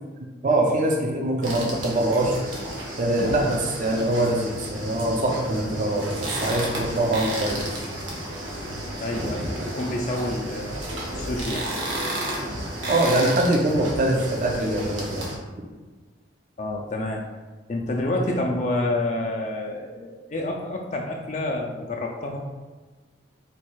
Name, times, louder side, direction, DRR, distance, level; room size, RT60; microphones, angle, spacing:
voice 1, 0.4-2.4 3.0-7.7 12.9-15.3, right 1 dB, 40° right, 1 dB, 0.5 m, -23 dB
sound 1, 1.4-15.4, right 1 dB, 85° right, 1.0 m, -32 dB
voice 2, 9.0-11.7 16.6-17.2 17.7-22.4, left 1 dB, 40° left, 1 dB, 0.4 m, -28 dB
4.1 x 2.4 x 4.5 m, 1.3 s
head